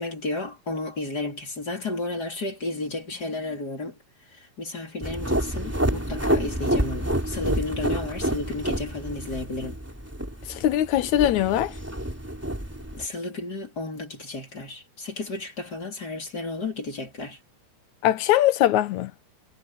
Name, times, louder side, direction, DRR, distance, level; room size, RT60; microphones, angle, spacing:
voice 1, 0.0-4.0 4.3-9.8 12.9-17.4, left 2 dB, 30° left, 4.0 m, -33 dB
sound 1, 5.0-13.1, right 1 dB, 5° right, 3.1 m, -28 dB
voice 2, 10.5-11.7 18.0-19.1, left 13 dB, 75° left, 2.2 m, -21 dB
omnidirectional pair, 3.6 m